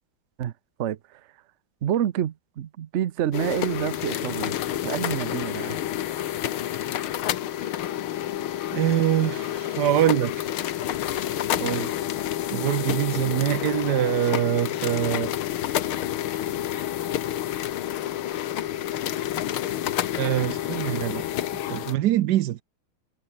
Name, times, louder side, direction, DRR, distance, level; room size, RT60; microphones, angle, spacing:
voice 1, 0.8-1.3 1.8-5.8 11.5-11.9, right 10 dB, 85° right, 0.6 m, -28 dB
sound 1, 3.3-22.0, left 12 dB, 80° left, 1.9 m, -29 dB
voice 2, 8.7-10.5 12.5-15.3 20.1-21.2 21.7-22.6, right 13 dB, 70° right, 1.0 m, -24 dB
omnidirectional pair, 2.3 m